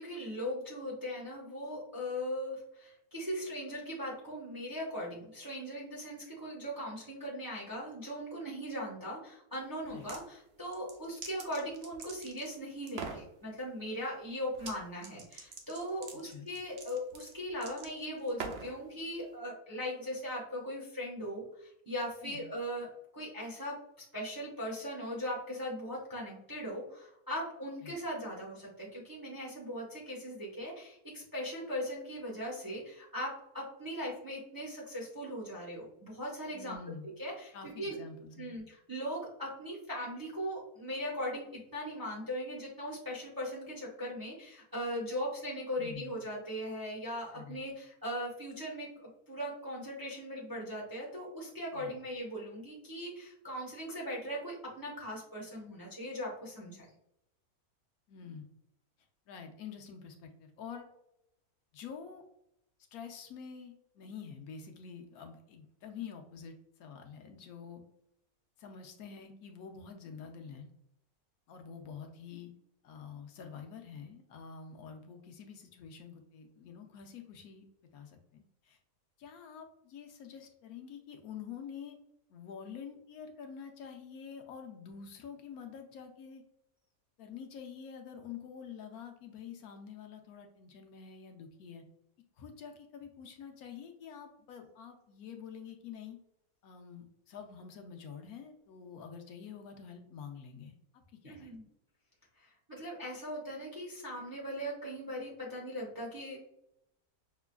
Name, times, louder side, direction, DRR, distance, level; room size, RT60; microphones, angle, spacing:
voice 1, 0.0-22.9 23.1-36.8 37.2-38.0 38.4-56.8 101.2-101.6 102.4-106.4, equal, 20° right, -4 dB, 0.7 m, -39 dB
sound 1, 9.8-10.2 10.7-12.5 12.9-13.3 14.5-14.8 15.0-18.8, right 5 dB, 60° right, 0.8 m, -44 dB
voice 2, 36.5-37.1 37.5-38.6 45.8-46.1 47.3-47.6 51.7-52.0 58.1-58.5 59.3-60.9 61.7-62.2 62.9-66.5 66.8-67.8 68.6-70.7 71.5-72.5 72.8-77.7 77.9-78.8 79.2-82.0 82.3-86.4 87.2-91.8 92.4-96.2 96.6-101.5, left 7 dB, 75° left, 4 dB, 1.1 m, -47 dB
5.7 x 2.3 x 2.2 m, 0.81 s
omnidirectional pair, 1.6 m